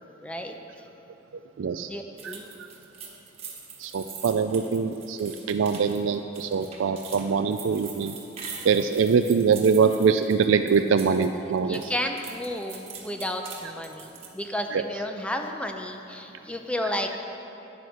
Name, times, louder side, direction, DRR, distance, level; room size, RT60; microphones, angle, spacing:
voice 1, 0.2-0.6 1.8-2.5 11.7-17.2, left 1 dB, 5° left, 4 dB, 0.6 m, -32 dB
voice 2, 1.6-1.9 2.2-2.3 3.8-8.2 8.6-11.8 14.7-14.8, right 5 dB, 70° right, 8 dB, 0.4 m, -23 dB
sound 1, 2.2-11.3 11.6-14.4, right 6 dB, 30° right, 1.4 m, -43 dB
9.7 x 9.5 x 6.4 m, 2.9 s
head